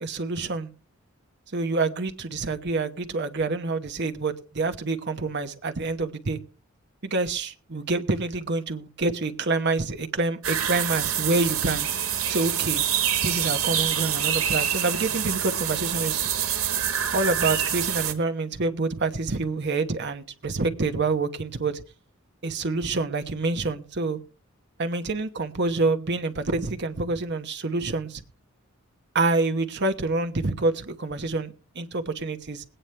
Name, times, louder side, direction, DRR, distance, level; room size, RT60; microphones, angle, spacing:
voice 1, 0.0-0.7 1.5-6.4 7.0-11.9 12.3-12.8 13.2-16.2 17.1-21.8 22.4-24.2 24.8-28.2 29.1-32.6, right 3 dB, 55° right, 1.0 m, -27 dB
sound 1, 10.4-18.1, right 9 dB, 90° right, 1.6 m, -26 dB
21.0 x 9.0 x 3.3 m
head